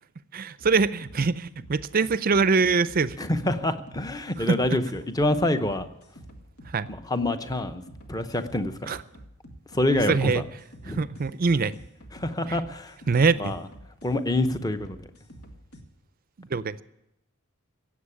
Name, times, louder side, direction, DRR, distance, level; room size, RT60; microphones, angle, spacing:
voice 1, 0.3-3.1 4.5-4.6 6.7-6.9 8.9-9.0 10.1-10.4 11.0-11.7 13.1-13.5 16.5-16.7, right 4 dB, 40° right, 16 dB, 0.5 m, -23 dB
sound 1, 0.6-15.8, right 1 dB, 90° left, 2.0 m, -47 dB
voice 2, 3.2-5.9 6.9-7.8 8.1-9.0 9.7-10.4 10.8-11.0 12.1-12.9 13.4-13.6 14.0-15.1, left 1 dB, 15° left, 9 dB, 0.8 m, -26 dB
16.5 x 7.8 x 9.8 m, 0.86 s
head